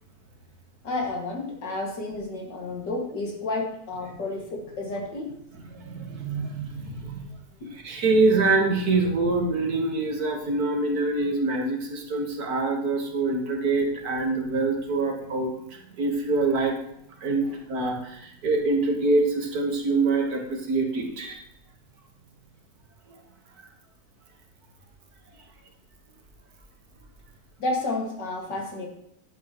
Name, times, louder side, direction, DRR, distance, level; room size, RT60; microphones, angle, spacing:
voice 1, 0.8-5.4 17.4-17.6 27.6-28.9, left 2 dB, 80° left, -1 dB, 2.6 m, -31 dB
voice 2, 5.8-7.2 7.7-15.5 16.0-16.7 17.2-21.4, right 3 dB, 60° right, 2 dB, 1.8 m, -25 dB
11.0 x 8.1 x 3.0 m, 0.72 s
omnidirectional pair, 1.8 m